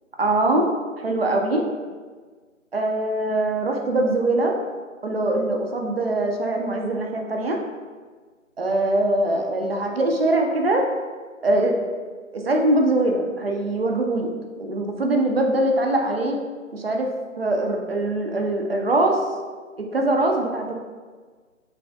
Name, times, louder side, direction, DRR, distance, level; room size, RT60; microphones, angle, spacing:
voice 1, 0.2-0.7 1.0-1.6 2.7-4.6 5.0-7.6 8.6-10.8 11.4-11.7 12.3-14.3 14.6-16.4 16.7-17.1 17.4-19.2 19.8-20.7, right 2 dB, 50° right, 2 dB, 0.5 m, -22 dB
3.3 x 3.2 x 2.6 m, 1.5 s
figure-of-eight pair, 165°, 40 cm